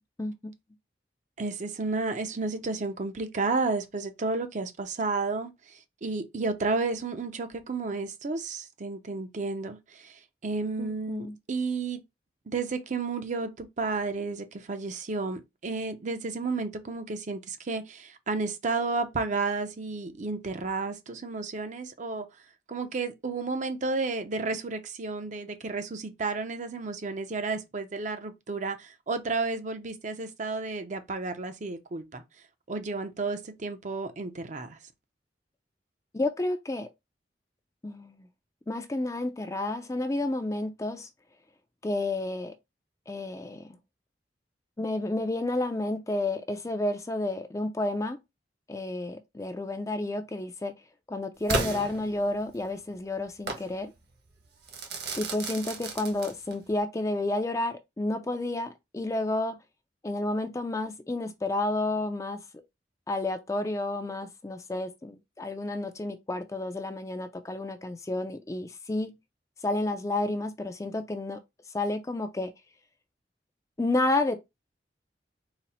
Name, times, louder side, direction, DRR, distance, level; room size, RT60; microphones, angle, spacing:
voice 1, 0.2-0.5 10.8-11.4 36.1-36.9 37.8-38.3 38.7-41.1 41.8-42.5 43.1-43.8 44.8-48.2 48.7-50.7 51.1-53.9 55.2-59.6 60.0-62.4 63.1-69.2 69.6-71.4 71.7-72.5 73.8-74.4, left 2 dB, 20° left, 0.4 m, -31 dB
voice 2, 1.4-12.0 12.5-22.3 22.7-32.2 32.7-34.8, right 3 dB, 45° right, 0.6 m, -32 dB
Crackle / Fireworks, 51.5-52.6 53.5-53.7 54.7-56.7, right 3 dB, 65° right, 1.1 m, -33 dB
4.0 x 2.0 x 4.1 m
head